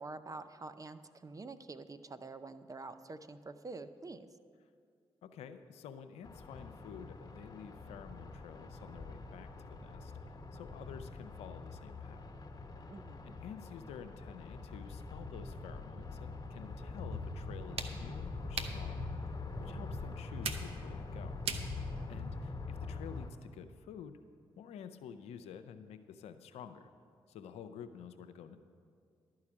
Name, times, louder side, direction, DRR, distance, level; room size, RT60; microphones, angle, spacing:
voice 1, 0.0-4.3 12.9-13.4 21.9-22.1, right 3 dB, 35° right, 11 dB, 0.6 m, -47 dB
voice 2, 5.2-12.2 13.3-19.0 19.6-21.4 22.1-24.2 24.6-26.9 27.3-28.6, left 7 dB, 85° left, 10 dB, 0.5 m, -50 dB
sound 1, 6.2-23.3, left 3 dB, 35° left, 1.1 m, -44 dB
sound 2, 16.6-22.5, right 6 dB, 70° right, 0.7 m, -45 dB
12.0 x 4.8 x 8.6 m, 2.2 s
supercardioid pair, 45°, 10 cm